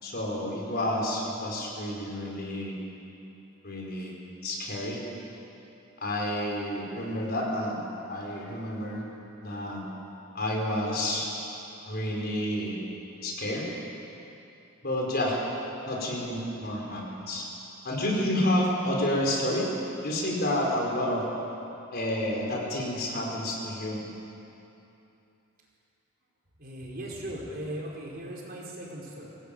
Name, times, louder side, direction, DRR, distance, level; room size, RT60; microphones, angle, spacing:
voice 1, 0.0-2.7 3.6-4.1 4.4-5.0 6.0-7.8 8.1-9.0 9.4-9.8 10.3-11.3 11.9-12.8 13.2-13.7 14.8-15.4 15.8-17.5 17.8-19.7 20.0-21.2 21.9-24.0, left 1 dB, 50° left, -1 dB, 4.8 m, -29 dB
voice 2, 26.6-29.3, right 1 dB, 45° right, -3 dB, 4.8 m, -38 dB
22.5 x 18.0 x 9.1 m, 2.9 s
head